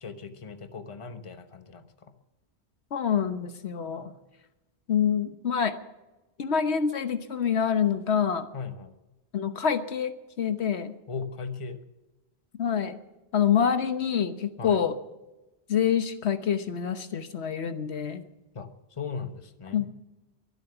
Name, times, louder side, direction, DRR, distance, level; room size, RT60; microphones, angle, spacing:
voice 1, 0.0-2.1 8.5-8.9 11.1-11.8 14.6-14.8 18.5-18.7 19.0-19.9, left 5 dB, 30° left, 8 dB, 1.1 m, -38 dB
voice 2, 2.9-4.1 4.9-5.7 6.4-8.5 9.3-10.9 12.6-13.0 13.3-15.0 15.7-18.2 19.7-19.9, left 7 dB, 80° left, 9 dB, 1.3 m, -26 dB
23.0 x 8.0 x 6.9 m, 1.0 s
omnidirectional pair, 1.1 m